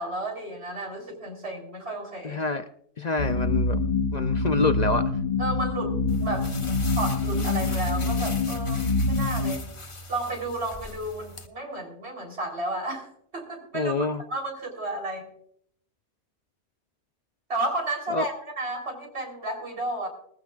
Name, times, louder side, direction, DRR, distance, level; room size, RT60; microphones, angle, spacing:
voice 1, 0.0-2.4 5.4-6.5 7.0-9.7 10.1-13.1 13.3-13.9 14.3-15.3 17.5-20.1, right 2 dB, 55° right, 1 dB, 4.1 m, -32 dB
voice 2, 2.2-2.6 3.0-3.8 4.1-5.1 13.7-14.2 18.1-18.3, left 3 dB, 50° left, 9 dB, 0.5 m, -26 dB
sound 1, 3.2-9.6, left 3 dB, 85° left, 1.8 m, -25 dB
sound 2, 6.1-11.5, left 2 dB, 25° left, 1.0 m, -40 dB
20.5 x 15.0 x 2.4 m, 0.68 s
omnidirectional pair, 1.3 m